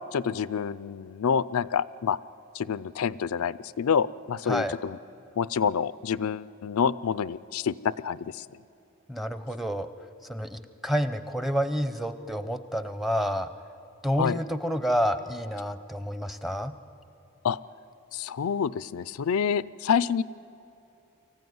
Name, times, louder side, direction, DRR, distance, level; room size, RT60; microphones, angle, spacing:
voice 1, 0.1-2.2 2.5-5.0 5.4-8.2 14.2-14.4 17.4-17.6 18.1-20.2, left 7 dB, 80° left, 16 dB, 0.4 m, -27 dB
voice 2, 9.1-9.9 10.3-13.5 14.0-16.7, equal, ahead, 11 dB, 0.6 m, -29 dB
24.0 x 15.0 x 9.5 m, 2.8 s
head